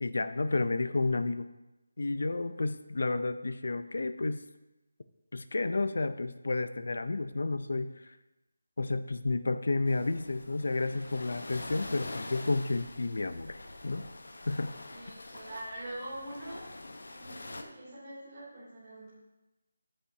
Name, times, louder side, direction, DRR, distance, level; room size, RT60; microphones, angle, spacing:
voice 1, 0.0-1.5 2.0-4.4 5.3-8.2 8.8-14.1 14.5-14.7, left 3 dB, 55° left, 11 dB, 0.6 m, -31 dB
sound 1, 9.9-17.6, left 2 dB, 85° left, 1.0 m, -45 dB
voice 2, 14.9-16.6 17.1-19.1, right 1 dB, 15° right, -12 dB, 3.1 m, -44 dB
15.5 x 5.7 x 2.8 m, 1.0 s
figure-of-eight pair, 180°, 0 cm